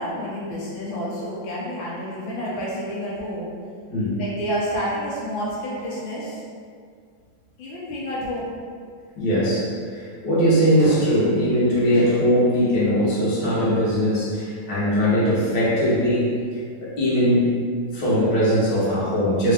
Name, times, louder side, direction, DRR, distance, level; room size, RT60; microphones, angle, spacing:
voice 1, 0.0-3.5 4.2-6.4 7.6-8.4, equal, 85° left, -6 dB, 1.5 m, -29 dB
voice 2, 9.2-16.3 16.8-17.6 17.9-19.5, equal, 65° left, -8 dB, 1.5 m, -20 dB
3.6 x 2.4 x 3.4 m, 2.1 s
omnidirectional pair, 2.1 m